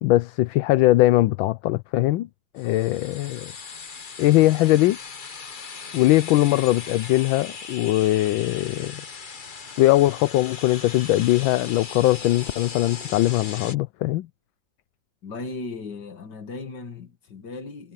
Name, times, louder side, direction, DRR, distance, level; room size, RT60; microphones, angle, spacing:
voice 1, 0.0-2.3 2.5-3.5 4.2-5.0 5.9-9.0 9.8-14.3, left 16 dB, 85° left, 1.4 m, -20 dB
sound 1, 2.6-13.7, left 5 dB, 35° left, 0.9 m, -38 dB
voice 2, 15.2-17.9, left 3 dB, 60° left, 2.6 m, -36 dB
omnidirectional pair, 2.1 m